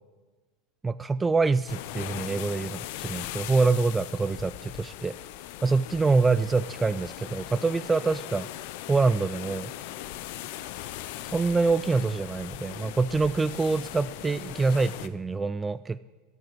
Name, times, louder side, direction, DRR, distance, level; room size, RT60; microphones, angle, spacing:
voice 1, 0.8-5.2 5.6-8.5 8.9-9.7 11.2-16.0, right 4 dB, 15° right, 14 dB, 0.3 m, -25 dB
sound 1, 1.7-15.1, left 14 dB, 65° left, 0.5 m, -39 dB
10.5 x 8.7 x 7.6 m, 1.3 s
hypercardioid pair, 85°, 0 cm